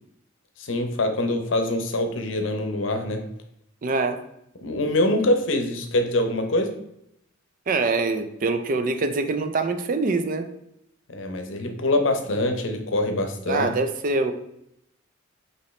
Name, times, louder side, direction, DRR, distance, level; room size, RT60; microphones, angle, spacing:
voice 1, 0.6-3.2 4.6-6.7 11.1-13.7, left 1 dB, 65° left, 5 dB, 0.7 m, -24 dB
voice 2, 3.8-4.2 7.7-10.5 13.5-14.3, right 3 dB, 40° right, 8 dB, 0.4 m, -24 dB
5.6 x 3.0 x 3.1 m, 0.78 s
head